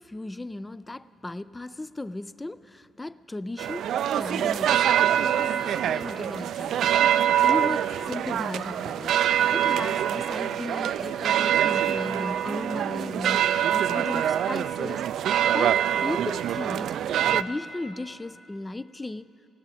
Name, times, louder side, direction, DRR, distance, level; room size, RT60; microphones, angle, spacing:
voice 1, 0.0-9.2 9.5-17.0 17.3-19.3, left 2 dB, 15° left, 17 dB, 0.3 m, -36 dB
sound 1, 3.6-17.4, right 10 dB, 75° right, 0.3 m, -24 dB
18.0 x 17.5 x 4.2 m, 2.9 s
cardioid pair, 90°, 0 cm